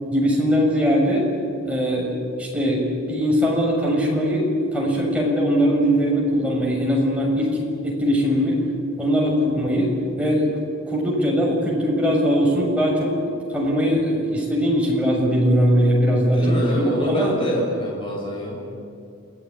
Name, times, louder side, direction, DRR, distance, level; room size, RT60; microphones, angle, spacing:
voice 1, 0.1-1.3 1.6-7.5 7.8-8.6 9.0-10.5 10.9-13.1 13.5-17.3, equal, 5° right, -3 dB, 6.8 m, -20 dB
voice 2, 16.1-18.6, equal, 25° left, -3 dB, 6.9 m, -26 dB
29.0 x 18.5 x 9.9 m, 2.6 s
head